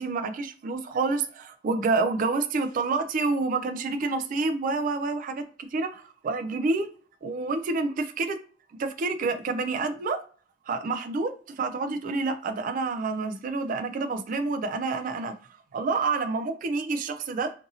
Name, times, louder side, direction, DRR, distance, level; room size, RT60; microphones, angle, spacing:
voice 1, 0.0-5.4 5.7-6.9 7.2-8.4 8.8-10.2 10.7-15.3 15.7-17.5, right 3 dB, 45° right, 8 dB, 0.3 m, -28 dB
2.7 x 2.6 x 2.6 m, 0.40 s
head